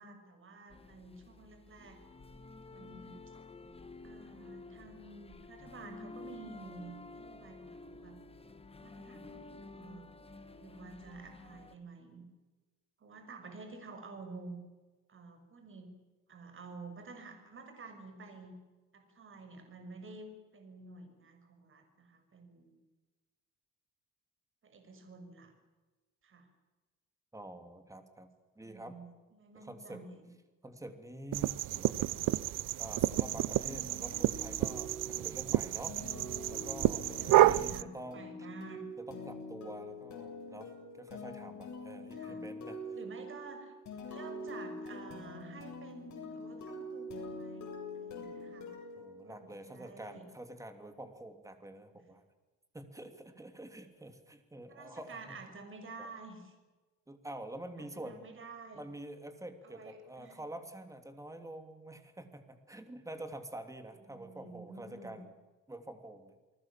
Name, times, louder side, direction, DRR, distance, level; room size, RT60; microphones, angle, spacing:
voice 1, 0.0-2.0 2.7-3.2 4.0-8.2 8.8-10.1 10.5-12.2 13.0-14.6 15.1-15.9 16.3-18.5 18.9-20.3 20.5-22.8 24.6-25.5 26.2-26.5 28.6-30.3 37.1-38.9 42.1-42.5 42.9-43.7 44.1-48.7 49.2-50.3 51.9-52.0 54.7-56.5 57.8-58.8 59.6-60.4 64.1-65.2, right 3 dB, 40° right, 6 dB, 6.3 m, -50 dB
sound 1, 0.7-11.8, left 3 dB, 20° left, 1.5 m, -51 dB
voice 2, 27.3-28.3 28.5-29.0 29.5-30.0 30.6-36.0 36.5-38.3 39.0-42.8 49.0-52.2 52.7-55.4 56.0-56.1 57.1-58.3 58.7-65.4 65.7-66.4, right 1 dB, 10° right, 7 dB, 2.9 m, -47 dB
sound 2, 31.3-37.8, right 15 dB, 75° right, 0.8 m, -30 dB
sound 3, 33.1-49.8, left 1 dB, 60° left, 7.6 m, -45 dB
29.0 x 19.5 x 7.5 m, 1.2 s
cardioid pair, 135°, 32 cm